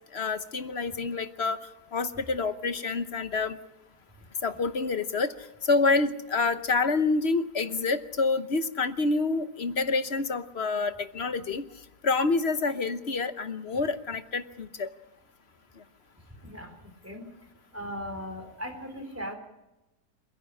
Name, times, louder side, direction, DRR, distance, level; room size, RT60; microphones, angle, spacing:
voice 1, 0.1-1.6 1.9-3.6 4.4-5.3 5.6-11.6 12.0-14.9, left 3 dB, 45° left, 11 dB, 1.1 m, -27 dB
voice 2, 16.4-17.2 17.7-19.3, equal, 10° right, 4 dB, 3.9 m, -38 dB
28.0 x 10.5 x 9.9 m, 1.0 s
omnidirectional pair, 1.7 m